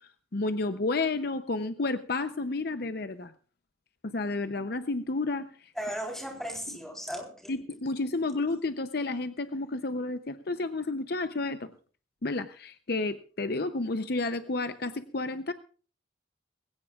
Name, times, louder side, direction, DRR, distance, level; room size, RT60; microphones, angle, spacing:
voice 1, 0.3-3.3 4.0-5.5 7.5-11.7 12.2-15.5, left 3 dB, 55° left, 9 dB, 0.7 m, -31 dB
voice 2, 5.8-7.6, equal, ahead, 1 dB, 3.7 m, -36 dB
21.0 x 17.0 x 2.4 m, 0.40 s
head